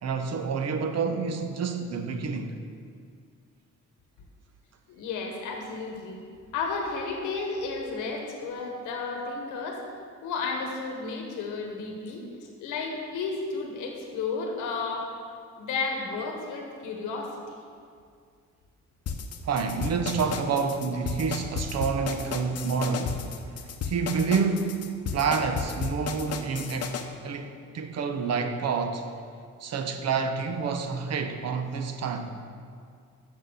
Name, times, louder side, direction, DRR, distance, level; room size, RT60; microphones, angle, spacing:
voice 1, 0.0-2.6 12.2-12.4 19.4-23.2 23.5-24.8 25.1-27.0 27.2-29.1 29.6-32.3, right 5 dB, 55° right, 7 dB, 0.9 m, -28 dB
voice 2, 4.9-6.2 6.5-9.8 10.2-12.2 12.6-15.1 15.6-17.5, left 4 dB, 85° left, 1 dB, 1.1 m, -32 dB
sound 1, 19.1-27.0, left 6 dB, 55° left, 0.8 m, -33 dB
6.3 x 5.8 x 7.0 m, 2.2 s
cardioid pair, 90°, 30 cm